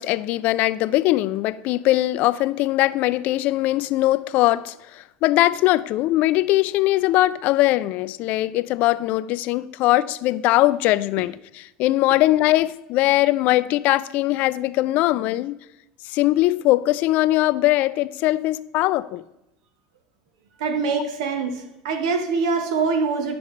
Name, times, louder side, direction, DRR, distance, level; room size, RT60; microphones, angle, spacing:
voice 1, 0.0-15.6 16.1-19.2, left 16 dB, 55° left, 0.3 m, -21 dB
voice 2, 20.6-21.5 21.8-23.3, right 4 dB, 85° right, 1.1 m, -23 dB
10.0 x 6.9 x 3.2 m
supercardioid pair, 120°, 3 cm